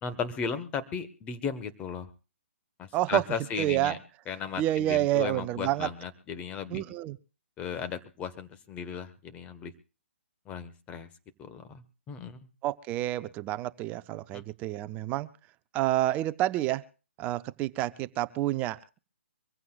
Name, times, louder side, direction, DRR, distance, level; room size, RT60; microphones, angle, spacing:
voice 1, 0.0-2.1 2.8-4.0 4.3-6.8 7.6-9.7 10.5-11.1 11.4-12.4 14.3-14.4, left 6 dB, 20° left, 10 dB, 1.4 m, -36 dB
voice 2, 2.9-3.2 3.6-4.0 4.6-5.9 6.7-7.2 12.6-15.3 15.7-16.8 17.2-18.8, right 15 dB, 20° right, 14 dB, 0.7 m, -28 dB
24.5 x 15.5 x 2.4 m, 0.34 s
hypercardioid pair, 140°, 7 cm